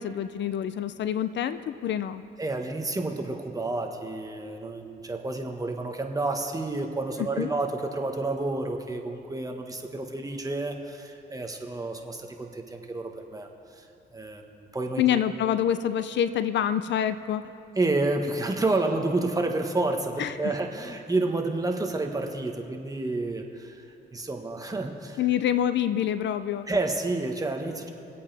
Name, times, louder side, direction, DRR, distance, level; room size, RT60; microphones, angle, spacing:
voice 1, 0.0-2.2 7.2-7.5 15.0-17.5 20.2-20.5 25.2-26.7, left 10 dB, 65° left, 12 dB, 0.5 m, -26 dB
voice 2, 2.4-13.5 13.8-13.9 14.1-15.0 17.7-23.8 24.1-25.2 26.7-27.9, right 2 dB, 20° right, 3 dB, 1.3 m, -30 dB
24.0 x 8.4 x 3.4 m, 2.7 s
cardioid pair, 90°, 20 cm